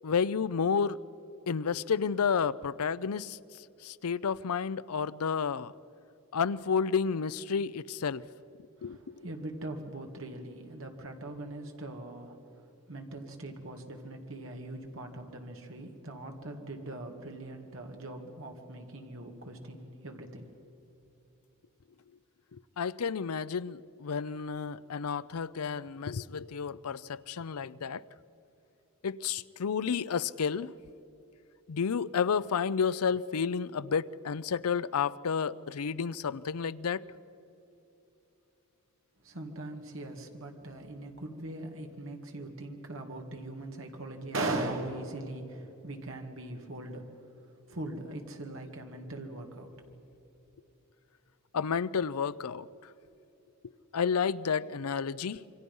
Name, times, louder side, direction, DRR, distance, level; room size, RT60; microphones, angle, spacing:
voice 1, 0.0-1.0 1.5-3.4 3.8-5.7 6.3-8.2 8.8-9.3 22.5-28.0 29.0-30.7 31.7-37.0 51.5-52.7 53.9-55.4, left 6 dB, 90° left, 0.5 m, -31 dB
voice 2, 8.8-12.4 12.9-20.5 39.2-47.1 47.7-49.7, right 2 dB, 65° right, 2.2 m, -40 dB
27.5 x 24.0 x 5.5 m
head